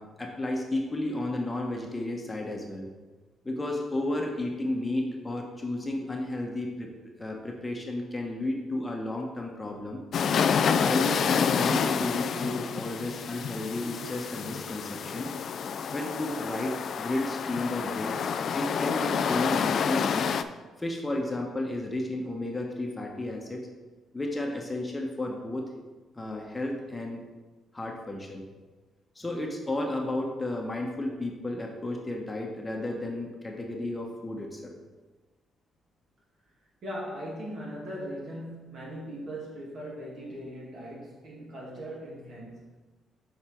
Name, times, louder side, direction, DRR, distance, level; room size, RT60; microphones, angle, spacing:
voice 1, 0.0-2.9 3.4-6.9 7.2-10.0 10.6-15.3 15.9-18.1 18.5-20.3 20.8-23.6 24.1-25.7 26.1-27.3 27.7-28.4 29.1-34.8, left 1 dB, 20° left, 1 dB, 1.0 m, -32 dB
sound 1, 10.1-20.4, left 7 dB, 60° left, 0.3 m, -28 dB
voice 2, 36.8-42.7, equal, 55° right, -4 dB, 2.3 m, -39 dB
6.7 x 4.8 x 4.4 m, 1.3 s
cardioid pair, 90°, 0 cm